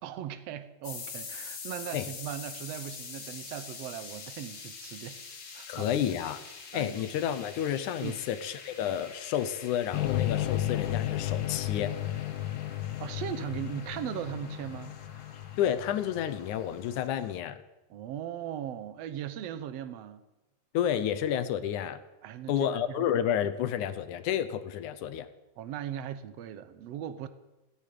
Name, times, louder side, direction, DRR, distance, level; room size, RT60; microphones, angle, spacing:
voice 1, 0.0-5.2 5.5-6.0 6.7-6.9 8.0-8.2 13.0-15.0 17.9-20.2 22.2-22.7 23.0-23.1 25.6-27.3, right 10 dB, 75° right, 12 dB, 1.4 m, -38 dB
sound 1, 0.8-17.2, left 5 dB, 55° left, 3.7 m, -46 dB
voice 2, 5.7-6.4 6.7-11.9 15.6-17.6 20.7-22.0 22.5-25.3, left 10 dB, 70° left, 11 dB, 2.1 m, -30 dB
sound 2, 9.9-17.1, left 13 dB, 90° left, 2.5 m, -33 dB
17.5 x 8.5 x 9.5 m, 1.0 s
omnidirectional pair, 4.1 m